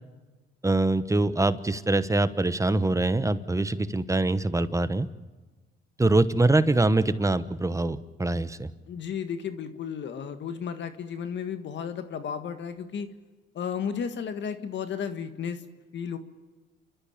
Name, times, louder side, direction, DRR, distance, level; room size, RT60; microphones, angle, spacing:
voice 1, 0.6-5.1 6.0-8.7, right 2 dB, 15° right, 13 dB, 1.0 m, -24 dB
voice 2, 8.9-13.1 13.5-15.7 15.9-16.2, left 7 dB, 65° left, 9 dB, 1.7 m, -33 dB
30.0 x 13.0 x 8.7 m, 1.2 s
cardioid pair, 90°, 20 cm